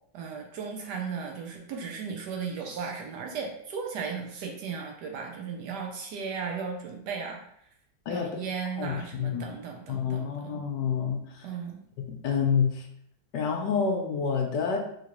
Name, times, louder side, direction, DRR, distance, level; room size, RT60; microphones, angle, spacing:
voice 1, 0.1-7.4 8.1-10.6 11.4-11.8, right 5 dB, 75° right, 1 dB, 1.1 m, -36 dB
voice 2, 8.1-8.4 8.8-9.5 9.9-11.4 12.1-12.9 13.3-14.8, left 6 dB, 75° left, 2 dB, 1.1 m, -28 dB
3.7 x 2.9 x 2.9 m, 0.70 s
omnidirectional pair, 2.0 m